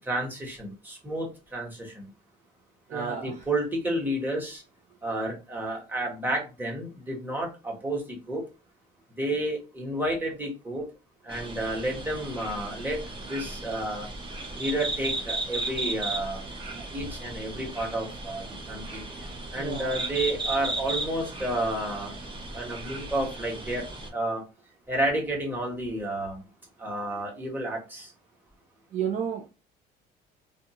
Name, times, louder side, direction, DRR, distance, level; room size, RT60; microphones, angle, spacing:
voice 1, 0.1-2.1 2.9-4.6 5.0-8.4 9.2-10.8 11.2-14.1 14.6-16.4 16.8-19.0 19.5-22.1 22.5-23.9 24.1-24.4 24.9-26.4 26.8-28.1, right 1 dB, 10° right, -1 dB, 1.2 m, -31 dB
voice 2, 2.9-3.5 16.8-17.1 19.5-20.0 28.9-29.5, right 8 dB, 45° right, 2 dB, 0.5 m, -33 dB
sound 1, 11.3-24.1, right 2 dB, 30° right, 0.9 m, -35 dB
2.5 x 2.3 x 2.9 m, 0.29 s
cardioid pair, 110°, 17 cm